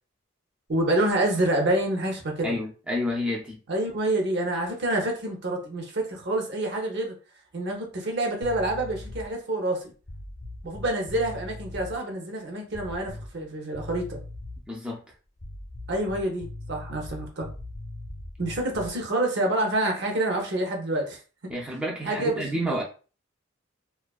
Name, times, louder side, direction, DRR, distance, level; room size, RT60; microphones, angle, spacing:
voice 1, 0.7-2.6 3.7-7.1 7.5-9.9 10.6-14.2 15.9-17.5 18.4-21.2 22.0-22.8, right 1 dB, 55° right, 0.7 m, -27 dB
voice 2, 2.4-3.6 14.7-15.0 21.5-22.8, equal, 5° right, 0.3 m, -29 dB
sound 1, 8.4-9.4 10.0-12.0 12.7-13.5 13.7-14.7 15.4-19.0, left 1 dB, 45° left, 0.7 m, -40 dB
2.5 x 2.3 x 2.3 m
head